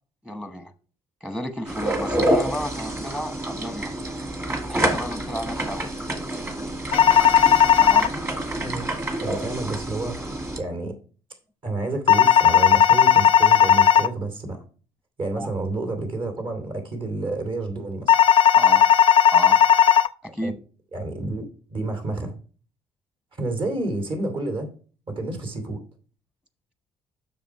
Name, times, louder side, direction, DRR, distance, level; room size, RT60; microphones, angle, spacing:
voice 1, 0.2-0.7 1.2-3.9 4.7-5.9 7.8-8.2 15.4-15.5 18.5-18.9 19.3-19.6 20.2-20.5, equal, 5° right, 9 dB, 1.1 m, -32 dB
sound 1, 1.7-10.6, right 1 dB, 25° right, 2.2 m, -28 dB
sound 2, 6.9-8.1 12.1-14.1 18.1-20.1, left 9 dB, 50° left, 0.5 m, -15 dB
voice 2, 9.2-11.0 11.6-14.6 15.2-18.1 20.4-20.6 20.9-22.3 23.4-24.7 25.1-25.8, right 2 dB, 45° right, 5 dB, 2.8 m, -30 dB
7.3 x 6.3 x 4.7 m, 0.39 s
cardioid pair, 95°, 12 cm